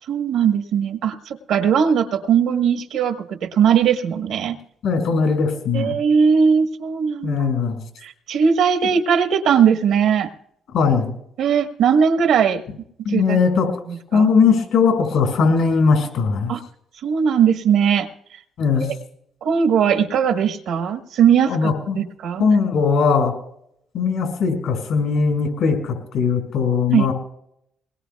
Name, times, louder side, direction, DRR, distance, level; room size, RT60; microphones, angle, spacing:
voice 1, 0.1-4.6 5.7-7.5 8.0-10.3 11.4-12.6 13.1-13.4 13.9-14.3 16.5-16.6 17.0-18.1 18.8-19.0 19.4-22.4 26.9-27.1, right 7 dB, 85° right, 6 dB, 1.3 m, -19 dB
voice 2, 4.8-5.9 7.2-7.8 10.7-11.1 13.0-13.7 14.1-16.5 18.6-18.9 21.5-22.0 22.4-23.3 23.9-27.1, left 5 dB, 80° left, 4 dB, 5.8 m, -19 dB
22.5 x 20.5 x 2.3 m, 0.72 s
cardioid pair, 90°, 0 cm